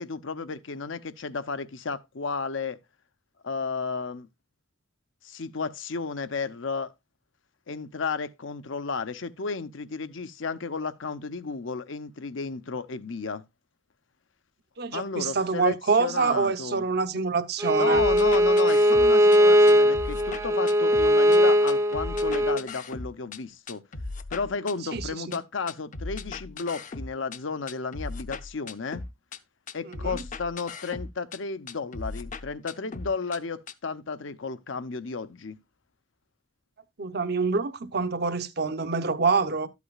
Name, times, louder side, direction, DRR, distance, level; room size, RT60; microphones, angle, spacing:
voice 1, 0.0-2.8 3.4-4.3 5.2-6.9 7.7-13.4 14.9-16.8 17.8-23.8 24.3-29.0 29.7-35.6, left 4 dB, 80° left, 0.8 m, -33 dB
voice 2, 14.8-18.0 21.4-21.5 24.9-25.4 29.9-30.2 37.0-39.7, right 4 dB, 55° right, 0.8 m, -26 dB
Bowed string instrument, 17.6-22.6, equal, 15° right, 0.6 m, -20 dB
sound 1, 17.9-19.4 19.7-21.4 21.7-23.4 23.7-25.4 25.7-27.4 27.7-29.4 29.7-31.4 31.7-33.4 33.7-33.8, left 3 dB, 40° left, 0.7 m, -38 dB
12.5 x 8.3 x 2.4 m
head